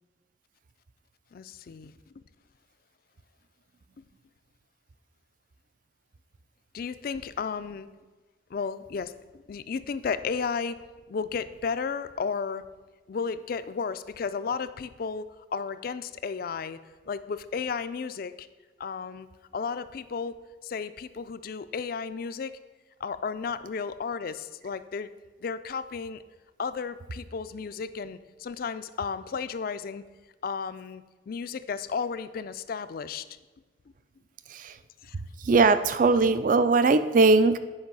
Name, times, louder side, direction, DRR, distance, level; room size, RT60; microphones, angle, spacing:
voice 1, 1.3-1.9 6.7-7.9 8.5-10.8 11.1-12.7 13.1-15.2 15.5-16.8 17.1-18.5 18.8-19.3 19.5-20.3 20.6-22.5 23.0-25.1 25.4-26.2 26.6-30.0 30.4-33.3 35.0-35.2, left 5 dB, 50° left, 13 dB, 0.3 m, -33 dB
voice 2, 35.5-37.6, right 3 dB, 45° right, 13 dB, 0.4 m, -20 dB
8.7 x 5.2 x 5.4 m, 1.3 s
head